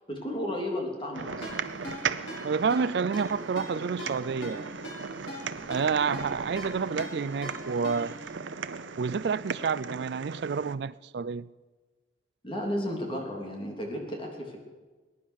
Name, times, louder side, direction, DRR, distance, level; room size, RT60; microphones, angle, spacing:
voice 1, 0.1-1.5 12.4-14.6, equal, 25° left, 3.3 m, -33 dB
sound 1, 1.1-10.7, right 5 dB, 85° right, 0.7 m, -37 dB
Ringtone, 1.4-8.3, left 1 dB, 85° left, 6.2 m, -42 dB
voice 2, 2.4-4.7 5.7-8.2 9.0-11.4, right 5 dB, 60° right, 0.4 m, -29 dB
21.0 x 10.0 x 6.4 m
head